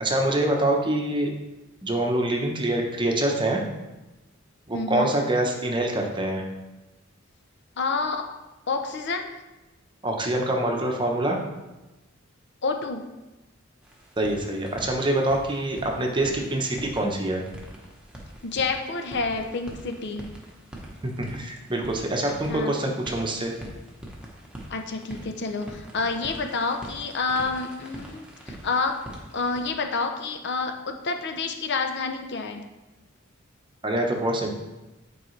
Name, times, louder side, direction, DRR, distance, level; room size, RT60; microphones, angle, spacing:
voice 1, 0.0-1.3 1.8-3.6 4.7-6.4 10.0-11.4 14.2-17.4 21.0-23.5 33.8-34.5, right 1 dB, 25° right, 1 dB, 0.9 m, -25 dB
voice 2, 4.7-5.1 7.8-8.3 8.7-9.3 12.6-13.0 18.4-20.3 22.5-22.7 24.7-28.9 29.3-32.6, left 4 dB, 60° left, 5 dB, 0.7 m, -28 dB
sound 1, 13.8-29.6, right 1 dB, 5° right, 1.1 m, -43 dB
9.0 x 4.7 x 3.2 m, 1.0 s
head